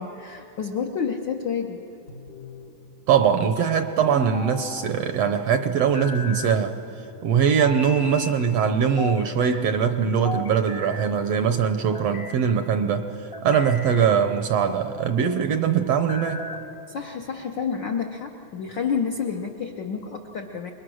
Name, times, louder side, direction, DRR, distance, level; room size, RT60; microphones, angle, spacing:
voice 1, 0.0-1.8 16.9-20.7, left 6 dB, 75° left, 2 dB, 1.0 m, -29 dB
sound 1, 2.1-2.8 4.1-4.9 5.7-6.5 7.6-8.4 9.0-9.6 10.2-11.1 11.7-12.4 13.1-14.1 14.6-15.1 15.9-16.7, left 2 dB, 50° left, 0.7 m, -36 dB
voice 2, 3.1-6.8 7.2-16.4, right 7 dB, 70° right, 8 dB, 1.6 m, -22 dB
27.5 x 22.0 x 6.3 m, 2.8 s
omnidirectional pair, 3.4 m